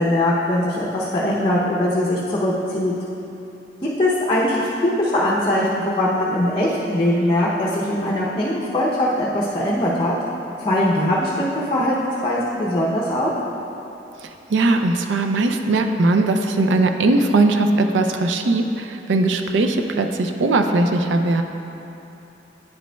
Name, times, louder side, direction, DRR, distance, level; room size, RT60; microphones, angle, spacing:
voice 1, 0.0-2.9 4.0-10.1 10.6-12.0 12.2-13.3, left 1 dB, 30° left, -5 dB, 0.6 m, -21 dB
voice 2, 14.2-21.4, right 2 dB, 85° right, 5 dB, 0.4 m, -19 dB
9.2 x 5.1 x 2.2 m, 2.9 s
head